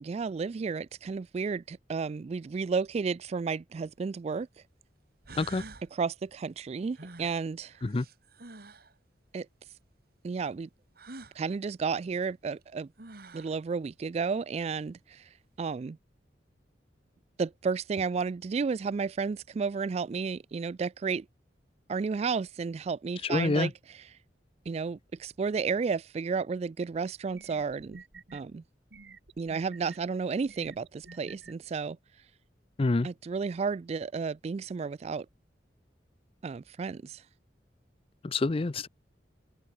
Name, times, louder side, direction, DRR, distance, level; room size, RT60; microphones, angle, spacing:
voice 1, 0.0-4.5 5.9-7.7 9.3-9.5 10.2-10.7 11.4-12.9 13.3-15.3 15.6-16.0 17.4-21.2 21.9-23.7 24.7-28.0 28.3-28.6 29.4-32.0 33.0-35.3 36.4-37.2, right 5 dB, 35° right, 0.3 m, -32 dB
sound 1, 4.8-4.9 5.2-5.9 6.9-8.9 10.9-11.4 12.6-12.7 13.0-13.6, right 3 dB, 55° right, 2.4 m, -47 dB
voice 2, 23.2-23.7 32.8-33.1 38.2-38.9, left 3 dB, 30° left, 0.5 m, -27 dB
sound 2, 26.8-26.9 27.3-28.4 28.9-30.0 30.5-31.5, right 4 dB, 70° right, 2.4 m, -50 dB
open air
head